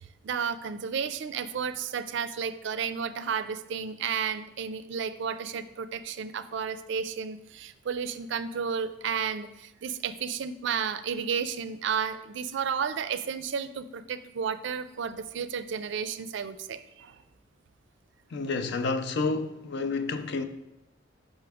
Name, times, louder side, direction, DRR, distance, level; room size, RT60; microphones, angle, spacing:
voice 1, 0.2-17.2, right 6 dB, 65° right, 0.4 m, -32 dB
voice 2, 18.3-20.4, left 3 dB, 60° left, 0.5 m, -29 dB
5.8 x 5.5 x 3.5 m
head